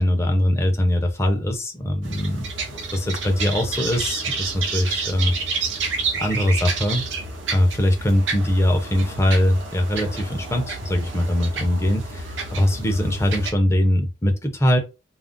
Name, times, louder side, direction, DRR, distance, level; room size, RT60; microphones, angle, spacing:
voice 1, 0.0-5.3 6.1-7.1 7.5-14.8, left 1 dB, 15° left, 3 dB, 0.6 m, -22 dB
sound 1, 2.0-13.5, right 4 dB, 75° right, 0.8 m, -29 dB
2.5 x 2.0 x 3.6 m, 0.27 s
head